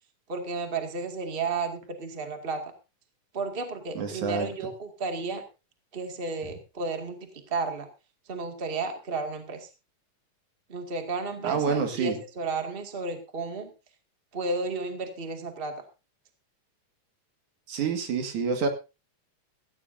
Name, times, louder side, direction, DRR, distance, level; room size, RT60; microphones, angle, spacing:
voice 1, 0.3-2.6 3.3-5.4 5.9-7.9 8.3-9.7 10.7-13.7 14.3-15.7, right 3 dB, 20° right, 5 dB, 1.9 m, -33 dB
voice 2, 4.0-4.5 11.4-12.2 17.7-18.7, right 5 dB, 70° right, 5 dB, 3.4 m, -27 dB
17.0 x 15.5 x 2.7 m, 0.29 s
omnidirectional pair, 3.6 m